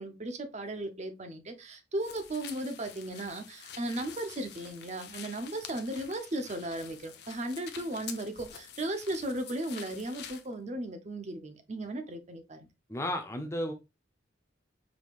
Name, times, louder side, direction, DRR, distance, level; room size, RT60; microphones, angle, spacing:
voice 1, 0.0-12.7, right 1 dB, 35° right, 0.7 m, -36 dB
sound 1, 2.0-10.5, left 8 dB, 55° left, 0.6 m, -47 dB
voice 2, 12.9-13.7, left 1 dB, 15° left, 0.5 m, -33 dB
4.8 x 3.6 x 2.4 m
head